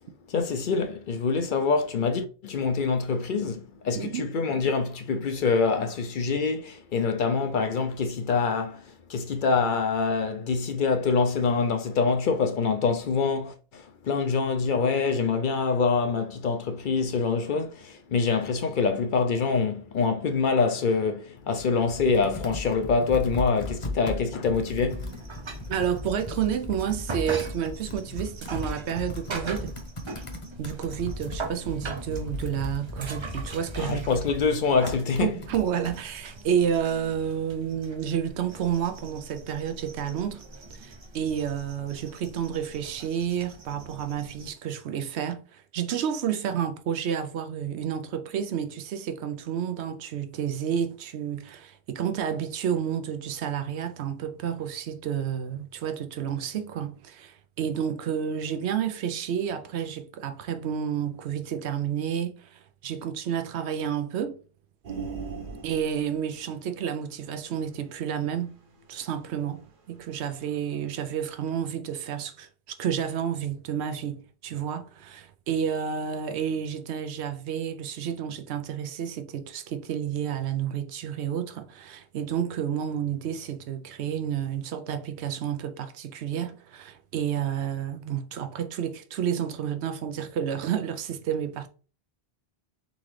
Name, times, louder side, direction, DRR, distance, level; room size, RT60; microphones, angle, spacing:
voice 1, 0.3-8.8 9.1-25.0 33.8-35.3, left 5 dB, 60° left, 0.6 m, -25 dB
Computer keyboard, 21.4-36.0, left 1 dB, 30° left, 0.9 m, -37 dB
sound 1, 24.9-44.5, right 3 dB, 35° right, 0.5 m, -42 dB
voice 2, 25.7-29.8 30.6-34.1 35.2-40.4 40.7-64.4 65.6-68.6 68.9-72.5 72.8-91.7, right 8 dB, 85° right, 0.9 m, -30 dB
sound 2, 64.8-70.7 71.0-71.1, right 5 dB, 55° right, 1.0 m, -41 dB
4.0 x 3.7 x 3.1 m
omnidirectional pair, 1.1 m